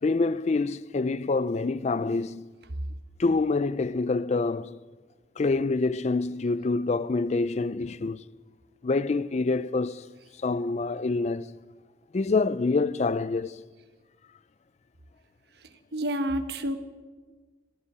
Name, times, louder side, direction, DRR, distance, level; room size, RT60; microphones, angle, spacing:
voice 1, 0.0-2.5 3.2-4.8 5.4-8.2 8.8-10.1 10.4-11.6 12.1-13.6, left 3 dB, 40° left, 0.4 m, -26 dB
voice 2, 15.9-16.8, right 1 dB, 65° right, 1.1 m, -28 dB
26.5 x 11.0 x 4.9 m
head